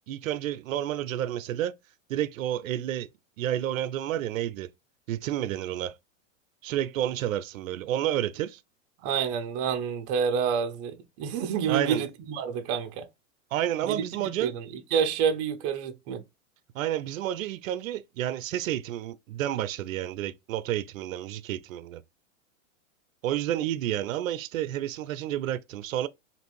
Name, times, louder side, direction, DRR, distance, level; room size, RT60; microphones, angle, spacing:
voice 1, 0.1-1.7 2.1-3.1 3.4-4.7 5.1-6.0 6.6-8.6 11.7-12.0 13.5-14.5 16.7-22.0 23.2-26.1, right 12 dB, 85° right, 0.5 m, -30 dB
voice 2, 9.0-13.1 13.9-14.7 14.9-16.2, right 7 dB, 30° right, 0.5 m, -28 dB
2.9 x 2.6 x 3.0 m
supercardioid pair, 140°, 39 cm